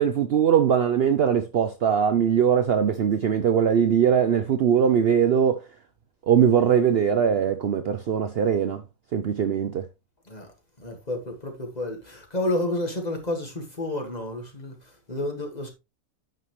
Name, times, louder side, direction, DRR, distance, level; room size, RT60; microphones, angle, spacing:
voice 1, 0.0-5.6 6.3-8.8 9.1-9.9, right 8 dB, 55° right, 0.7 m, -21 dB
voice 2, 10.2-15.7, left 1 dB, 30° left, 2.0 m, -31 dB
9.2 x 5.7 x 3.1 m
omnidirectional pair, 1.5 m